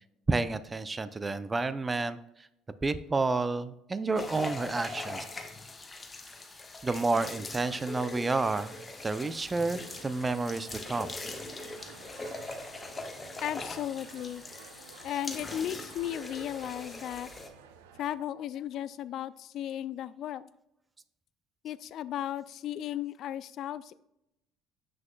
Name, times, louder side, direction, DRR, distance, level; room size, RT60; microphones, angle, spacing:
voice 1, 0.3-2.2 2.8-5.2 6.8-11.1, right 3 dB, 25° right, 14 dB, 0.5 m, -30 dB
sound 1, 4.2-17.5, left 2 dB, 25° left, 1.1 m, -41 dB
sound 2, 9.5-18.2, right 7 dB, 85° right, 0.5 m, -53 dB
voice 2, 13.4-14.4 15.0-17.3 18.0-20.5 21.6-23.9, left 11 dB, 60° left, 17 dB, 0.3 m, -35 dB
7.6 x 6.0 x 2.3 m, 0.83 s
hypercardioid pair, 65°, 0 cm